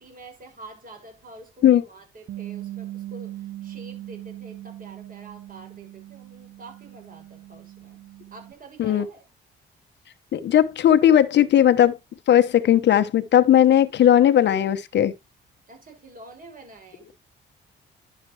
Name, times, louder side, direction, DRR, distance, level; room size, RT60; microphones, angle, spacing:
voice 1, 0.0-8.0 8.3-9.2 15.7-17.1, right 2 dB, 45° right, 6.2 m, -46 dB
Bass guitar, 2.3-8.5, right 14 dB, 65° right, 1.0 m, -39 dB
voice 2, 10.3-12.0 12.3-15.1, left 11 dB, 60° left, 0.9 m, -17 dB
11.0 x 6.6 x 3.2 m
cardioid pair, 90°, 20 cm